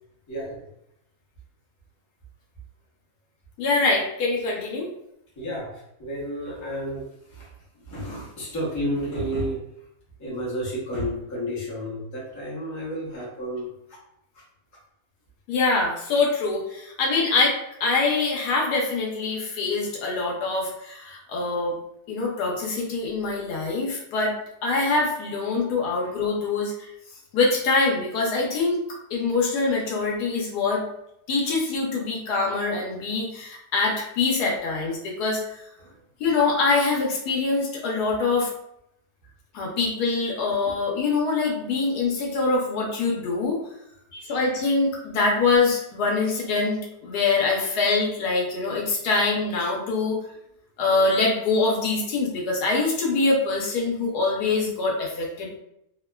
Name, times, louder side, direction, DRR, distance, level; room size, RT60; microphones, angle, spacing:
voice 1, 0.3-0.6 5.4-9.7 10.2-13.7 26.0-26.1 35.8-35.9 39.2-39.3 44.1-44.5, equal, 15° left, -7 dB, 0.6 m, -32 dB
voice 2, 3.6-4.9 15.5-21.7 22.1-24.3 24.6-26.9 27.3-28.8 29.1-30.8 31.3-35.4 36.2-38.5 39.5-43.6 44.3-50.2 50.8-55.6, left 3 dB, 80° left, -2 dB, 1.2 m, -24 dB
2.9 x 2.1 x 2.2 m, 0.78 s
omnidirectional pair, 1.7 m